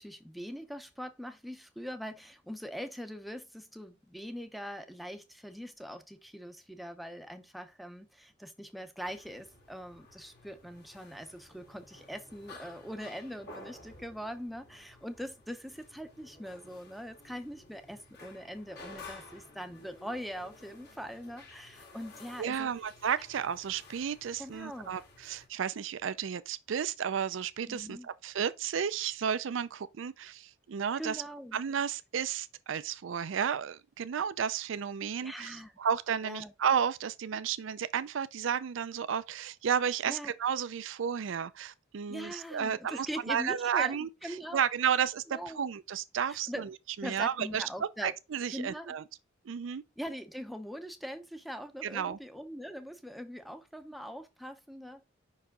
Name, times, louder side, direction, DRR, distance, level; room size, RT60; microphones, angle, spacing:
voice 1, 0.0-22.7 24.4-24.9 27.7-28.1 31.0-31.6 35.2-35.7 36.2-36.5 40.1-40.3 42.1-44.6 45.3-45.6 46.3-46.7 47.0-48.1 48.5-49.0 50.0-55.0, equal, ahead, 0.7 m, -42 dB
sound 1, 9.0-25.5, left 3 dB, 55° left, 2.2 m, -53 dB
voice 2, 22.4-31.2 31.5-46.7 47.0-49.0 49.5-49.8 51.8-52.2, right 7 dB, 65° right, 0.4 m, -32 dB
5.6 x 4.8 x 3.7 m
head